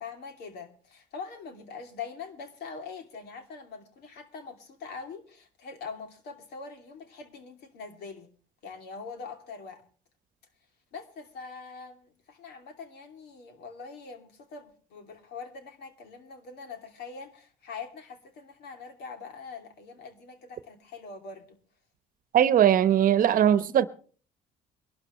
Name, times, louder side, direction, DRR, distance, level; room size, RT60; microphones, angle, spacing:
voice 1, 0.0-8.3 8.6-9.8 10.9-21.6, left 5 dB, 75° left, 2.9 m, -43 dB
voice 2, 22.3-23.9, right 10 dB, 55° right, 1.0 m, -20 dB
23.5 x 12.5 x 3.1 m
cardioid pair, 110°, 17 cm